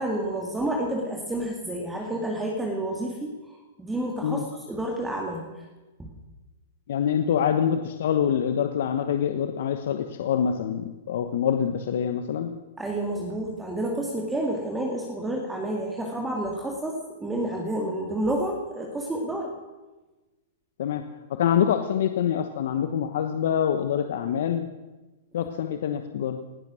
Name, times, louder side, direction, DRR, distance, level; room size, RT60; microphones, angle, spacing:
voice 1, 0.0-3.3 3.8-5.4 12.8-19.5, right 1 dB, 10° right, 0 dB, 2.3 m, -29 dB
voice 2, 6.9-12.5 20.8-21.0 21.4-24.7 25.3-26.4, left 8 dB, 65° left, 7 dB, 1.1 m, -25 dB
18.5 x 12.0 x 6.3 m, 1.2 s
hypercardioid pair, 140°, 0 cm